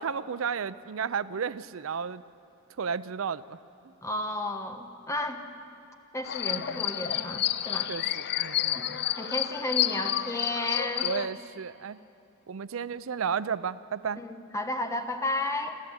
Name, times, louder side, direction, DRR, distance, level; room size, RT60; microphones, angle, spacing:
voice 1, 0.0-2.2 2.8-3.6 6.5-6.8 7.9-8.8 11.0-12.0 12.5-14.2, right 6 dB, 85° right, 16 dB, 0.5 m, -33 dB
voice 2, 4.0-5.4 6.1-7.9 8.7-11.1 14.2-15.8, left 1 dB, 15° left, 6 dB, 1.3 m, -33 dB
sound 1, 6.2-11.3, left 11 dB, 55° left, 0.6 m, -30 dB
28.0 x 13.5 x 7.9 m, 2.7 s
head